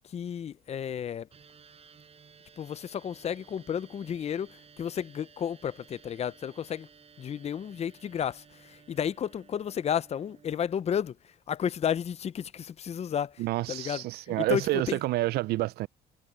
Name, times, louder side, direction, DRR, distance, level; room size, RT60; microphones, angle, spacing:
voice 1, 0.0-1.3 2.6-6.9 7.2-11.2 11.5-15.0, left 8 dB, 40° left, 0.6 m, -32 dB
sound 1, 1.3-10.6, right 6 dB, 35° right, 7.1 m, -56 dB
voice 2, 13.4-15.9, right 17 dB, 70° right, 0.4 m, -28 dB
cardioid pair, 110°, 17 cm